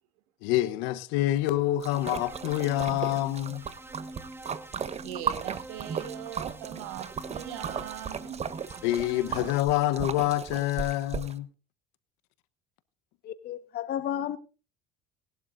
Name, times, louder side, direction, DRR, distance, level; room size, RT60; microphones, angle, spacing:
voice 1, 0.4-3.6 8.8-11.5, left 14 dB, 75° left, 1.1 m, -27 dB
Splash splatter, 1.8-11.3, right 6 dB, 35° right, 1.0 m, -36 dB
sound 1, 1.9-9.6, right 1 dB, 10° right, 1.6 m, -46 dB
voice 2, 5.0-8.4, right 12 dB, 80° right, 1.6 m, -40 dB
voice 3, 13.2-14.4, left 10 dB, 55° left, 1.3 m, -32 dB
19.5 x 11.5 x 2.6 m
supercardioid pair, 80°, 19 cm